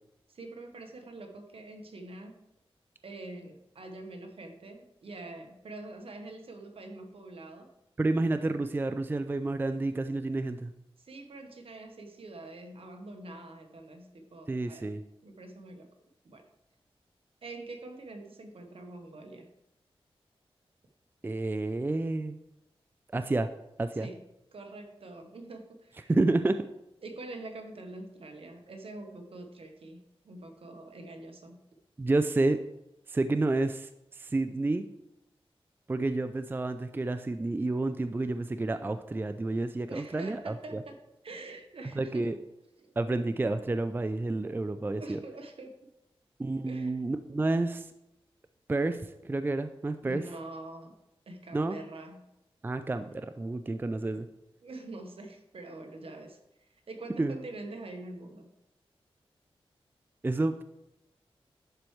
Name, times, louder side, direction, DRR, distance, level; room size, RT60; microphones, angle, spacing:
voice 1, 0.3-2.4 3.0-7.7 11.0-14.9 15.2-15.9 16.2-16.4 17.4-19.5 23.9-24.2 24.5-26.1 27.0-31.6 39.9-42.3 44.8-45.9 46.7-47.0 50.0-51.0 51.3-52.2 54.6-56.4 56.7-58.5, right 2 dB, 70° right, 4 dB, 1.1 m, -45 dB
voice 2, 8.0-10.7 14.5-15.0 21.2-22.4 23.1-23.5 23.8-24.1 26.1-26.6 32.0-32.6 33.1-34.9 35.9-40.8 42.0-42.3 43.0-45.2 46.4-47.9 48.7-50.2 51.5-51.8 52.6-54.3 57.2-57.4 60.2-60.6, right 2 dB, 20° right, 10 dB, 0.4 m, -30 dB
11.0 x 4.5 x 3.2 m, 0.89 s
wide cardioid pair, 70°, 10 cm